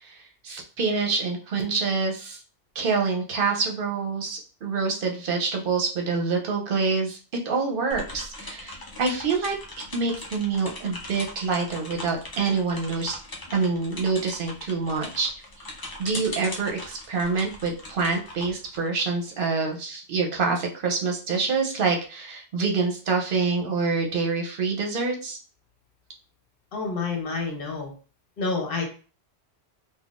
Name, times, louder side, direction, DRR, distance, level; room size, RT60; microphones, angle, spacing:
voice 1, 0.4-2.4 2.7-7.2 7.4-9.6 9.9-13.2 13.5-15.3 16.0-25.4, right 4 dB, 60° right, 2 dB, 0.8 m, -26 dB
sound 1, 7.9-19.4, left 1 dB, 30° left, 0.4 m, -40 dB
voice 2, 26.7-27.9 28.4-28.8, left 4 dB, 60° left, 2 dB, 1.0 m, -28 dB
3.6 x 2.2 x 2.4 m, 0.38 s
omnidirectional pair, 1.1 m